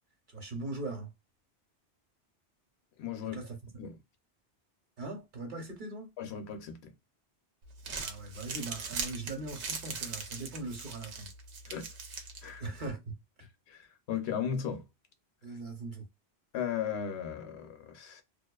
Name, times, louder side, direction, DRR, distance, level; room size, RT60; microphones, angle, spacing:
voice 1, 0.3-1.1 3.2-3.6 5.0-6.1 8.0-11.3 12.6-13.2 15.4-16.1, right 2 dB, 50° right, 0.9 m, -40 dB
voice 2, 3.0-3.4 3.8-3.9 6.2-6.9 11.7-11.9 12.4-12.6 13.7-14.8 16.5-18.2, left 8 dB, 75° left, 0.8 m, -36 dB
Crumpling crinkling, 7.6-12.9, right 5 dB, 85° right, 0.9 m, -41 dB
2.3 x 2.3 x 2.2 m
omnidirectional pair, 1.1 m